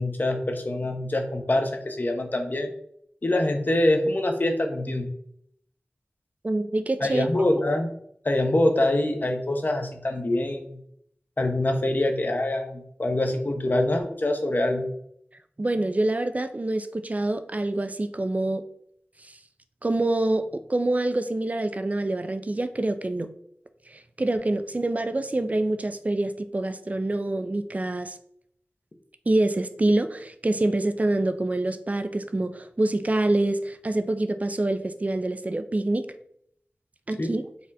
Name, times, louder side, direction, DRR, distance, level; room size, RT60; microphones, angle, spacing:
voice 1, 0.0-2.7 3.2-5.1 7.0-7.9 8.2-10.8 11.4-14.9 37.2-37.3, left 1 dB, 45° left, 4 dB, 0.7 m, -25 dB
voice 2, 6.4-7.3 15.6-18.6 19.2-19.4 19.8-23.3 23.9-28.2 29.3-36.1 37.1-37.4, right 2 dB, 35° right, 10 dB, 0.4 m, -26 dB
4.1 x 2.5 x 4.0 m, 0.69 s
cardioid pair, 40°, 4 cm